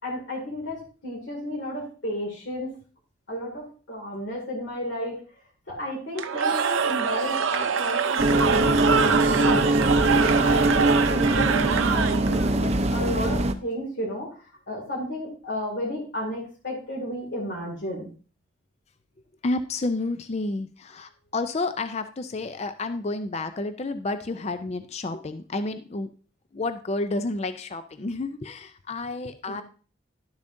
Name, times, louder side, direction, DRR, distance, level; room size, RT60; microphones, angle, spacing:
voice 1, 0.0-2.7 3.3-5.2 5.7-18.1 29.5-29.6, equal, 65° left, -2 dB, 2.3 m, -33 dB
Cheering / Crowd, 6.2-12.5, right 6 dB, 80° right, 0.6 m, -25 dB
sound 1, 8.2-13.5, right 2 dB, 30° right, 0.5 m, -22 dB
voice 2, 19.4-26.1 26.5-29.6, left 2 dB, 35° left, 10 dB, 0.4 m, -30 dB
11.5 x 7.1 x 2.6 m, 0.38 s
head